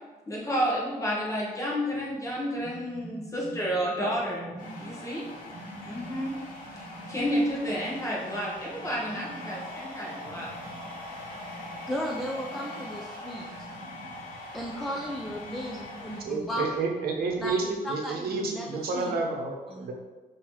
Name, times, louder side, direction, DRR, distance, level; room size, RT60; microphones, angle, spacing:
voice 1, 0.3-4.5 4.8-5.3 5.9-6.4 7.1-10.5, equal, 20° left, -5 dB, 0.9 m, -30 dB
sound 1, 1.9-17.7, right 2 dB, 30° right, 1.3 m, -48 dB
voice 2, 4.1-4.8 11.9-13.5 14.5-16.6 17.4-17.6 17.8-19.2 19.7-19.9, equal, ahead, -1 dB, 0.4 m, -35 dB
sound 2, 4.6-16.2, left 2 dB, 55° left, 1.3 m, -42 dB
voice 3, 16.2-19.9, right 4 dB, 75° right, 1 dB, 0.8 m, -30 dB
5.6 x 2.7 x 3.1 m, 1.2 s
cardioid pair, 135°, 16 cm